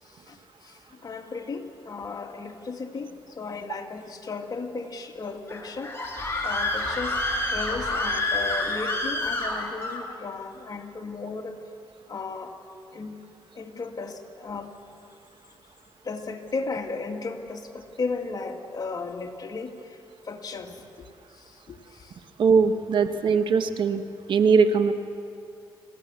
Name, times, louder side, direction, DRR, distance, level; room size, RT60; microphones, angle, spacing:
voice 1, 0.0-7.2 7.4-11.6 12.1-12.6 12.9-13.2 13.5-14.7 16.0-21.1 21.3-22.2 22.5-22.6, left 4 dB, 50° left, 3 dB, 2.5 m, -35 dB
Screaming, 5.5-10.0, left 2 dB, 30° left, 7.4 m, -28 dB
voice 2, 22.4-24.0 24.3-24.9, right 5 dB, 65° right, 9 dB, 1.3 m, -20 dB
27.0 x 16.5 x 7.3 m, 2.5 s
cardioid pair, 65°, 9 cm